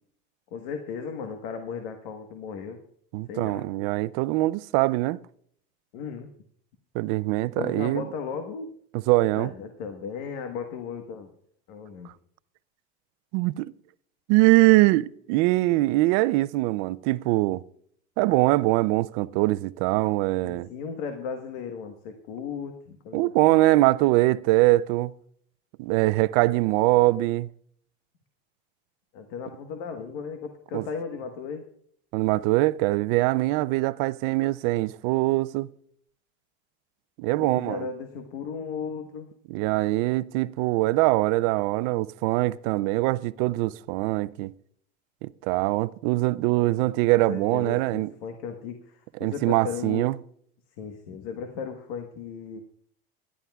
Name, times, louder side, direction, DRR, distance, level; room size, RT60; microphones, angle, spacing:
voice 1, 0.5-2.8 3.3-3.7 5.9-6.3 7.6-8.7 9.4-11.3 11.7-12.1 20.4-23.5 29.1-31.6 37.4-39.3 47.3-50.1 50.8-52.6, left 6 dB, 75° left, 1.4 m, -36 dB
voice 2, 3.1-5.2 6.9-8.0 9.1-9.5 13.3-13.7 14.3-17.6 18.2-20.7 23.1-25.1 25.8-27.5 30.7-30.9 32.1-35.7 37.2-37.9 39.5-44.5 45.2-48.1 49.2-50.1, right 19 dB, 65° right, 0.5 m, -23 dB
22.5 x 11.5 x 2.4 m
supercardioid pair, 130°, 29 cm